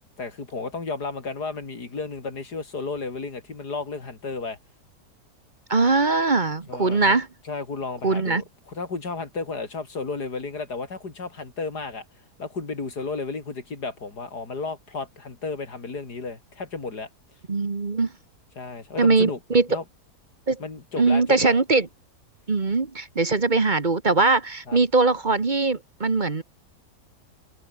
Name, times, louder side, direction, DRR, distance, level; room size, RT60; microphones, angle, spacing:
voice 1, 0.2-4.6 6.7-7.2 7.4-12.1 12.4-17.1 18.6-19.4 19.7-19.8 20.6-21.6 24.7-24.8, left 4 dB, 85° left, 4.3 m, -33 dB
voice 2, 5.7-7.3 8.0-8.4 17.5-18.1 19.0-19.6 20.5-20.6 21.0-21.9 22.5-26.4, right 3 dB, 30° right, 1.4 m, -21 dB
omnidirectional pair, 1.7 m